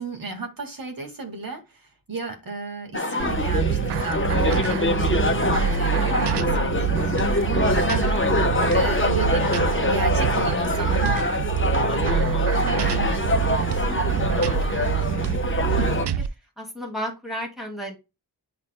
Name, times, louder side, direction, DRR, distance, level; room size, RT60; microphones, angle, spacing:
voice 1, 0.0-8.2 8.7-11.3 11.9-15.3 15.8-16.0, right 3 dB, 55° right, 2.1 m, -34 dB
sound 1, 2.9-16.1, left 2 dB, 30° left, 1.0 m, -24 dB
sound 2, 3.2-16.3, right 9 dB, 90° right, 0.5 m, -25 dB
voice 2, 16.6-18.0, equal, ahead, 2.7 m, -34 dB
10.0 x 4.2 x 2.2 m
wide cardioid pair, 95°, 40 cm